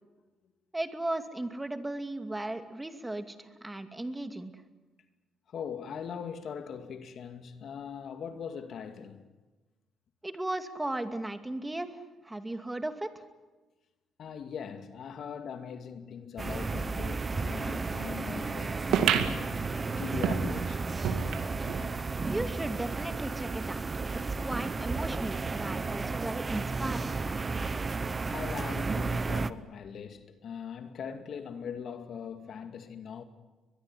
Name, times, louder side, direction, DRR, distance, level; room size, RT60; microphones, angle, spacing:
voice 1, 0.7-4.5 10.2-13.2 22.3-23.8 24.1-27.3, right 1 dB, 15° right, 2.4 m, -36 dB
voice 2, 5.5-9.2 14.2-18.9 20.0-20.9 28.3-33.2, left 7 dB, 65° left, 2.3 m, -41 dB
sound 1, 16.4-29.5, right 4 dB, 30° right, 1.1 m, -33 dB
sound 2, 18.9-21.9 22.3-22.4 22.6-22.7 23.5-23.6, right 8 dB, 85° right, 2.1 m, -30 dB
22.5 x 21.5 x 9.9 m
cardioid pair, 90°, 0 cm